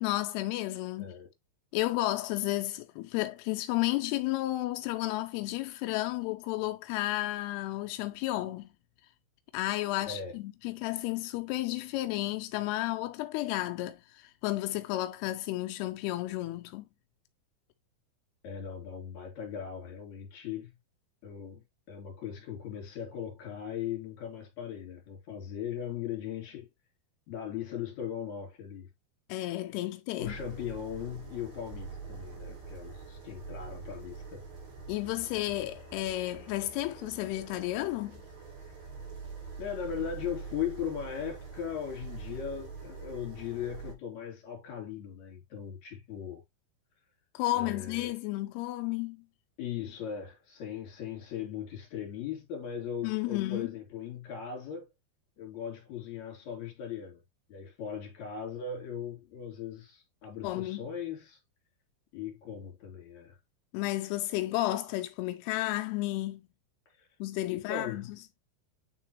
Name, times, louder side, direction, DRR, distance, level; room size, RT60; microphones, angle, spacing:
voice 1, 0.0-1.1 1.7-8.7 9.5-16.8 29.3-30.4 34.9-38.1 47.3-49.2 53.0-53.7 60.4-60.8 63.7-66.4 67.2-68.1, left 17 dB, 85° left, 2.3 m, -32 dB
voice 2, 1.0-1.3 10.1-10.4 18.4-20.7 21.2-26.7 27.3-28.9 30.1-34.5 39.6-46.4 47.5-48.2 49.6-54.9 55.4-57.2 57.5-61.4 62.1-63.4 66.9-67.1 67.5-68.1, left 8 dB, 45° left, 3.5 m, -39 dB
sound 1, 30.2-43.9, right 4 dB, 75° right, 5.6 m, -45 dB
9.2 x 3.7 x 3.0 m
omnidirectional pair, 5.2 m